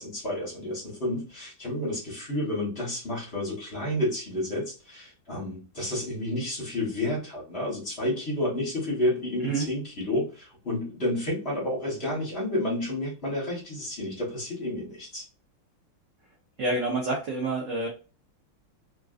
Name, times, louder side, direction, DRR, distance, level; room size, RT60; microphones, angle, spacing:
voice 1, 0.0-15.2, left 1 dB, 40° left, -4 dB, 1.2 m, -30 dB
voice 2, 16.6-17.9, right 2 dB, 65° right, 0 dB, 0.7 m, -28 dB
3.5 x 2.5 x 2.4 m, 0.33 s
omnidirectional pair, 2.1 m